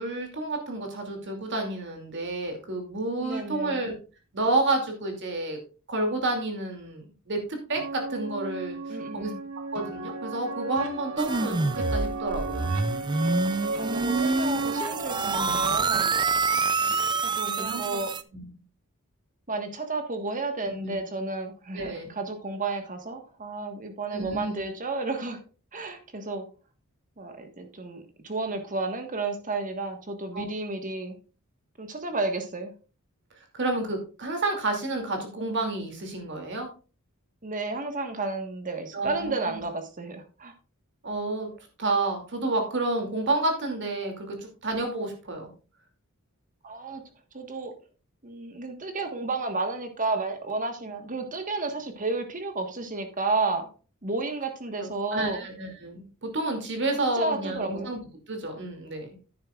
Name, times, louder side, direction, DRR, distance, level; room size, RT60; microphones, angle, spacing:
voice 1, 0.0-3.9 4.3-5.6 5.9-9.3 9.7-12.7 15.2-15.6 17.4-18.0 18.3-18.5 20.8-21.0 21.7-22.1 24.1-24.6 30.3-30.4 33.4-36.7 38.9-39.6 41.0-41.5 41.8-45.5 54.8-58.0 58.3-59.2, right 2 dB, 55° right, 3 dB, 2.7 m, -30 dB
voice 2, 3.2-3.9 8.9-9.4 13.8-16.1 17.2-18.1 19.5-25.4 25.7-26.5 27.2-31.1 31.8-32.7 37.4-40.5 46.6-47.0 47.3-47.7 48.2-53.7 54.0-55.5 57.1-57.9, right 3 dB, 35° right, 6 dB, 1.5 m, -32 dB
sound 1, 7.8-15.7, right 2 dB, 85° right, 1.3 m, -34 dB
sound 2, 11.2-18.2, right 4 dB, 20° right, 0.4 m, -27 dB
10.5 x 9.7 x 2.4 m, 0.35 s
head